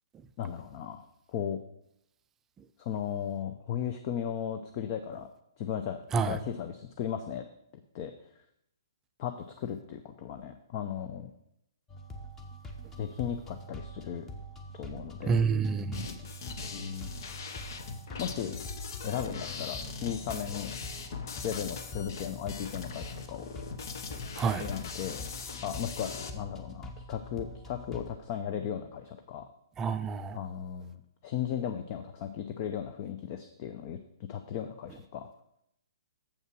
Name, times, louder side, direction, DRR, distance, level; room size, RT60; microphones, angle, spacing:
voice 1, 0.4-1.0 1.3-1.6 2.8-5.3 5.6-7.4 7.9-8.1 9.2-11.3 13.0-14.2 14.7-15.4 16.7-17.2 18.2-18.6 19.0-20.8 21.4-23.5 24.6-25.2 25.6-29.5 30.3-35.3, left 9 dB, 40° left, 7 dB, 0.6 m, -36 dB
sound 1, 11.9-28.2, equal, 15° left, 1.0 m, -45 dB
voice 2, 15.3-16.1 24.4-24.6 29.8-30.4, right 5 dB, 15° right, 10 dB, 0.4 m, -28 dB
sound 2, 15.9-26.3, left 5 dB, 60° left, 0.9 m, -41 dB
7.2 x 5.4 x 6.1 m, 0.78 s
hypercardioid pair, 135°, 2 cm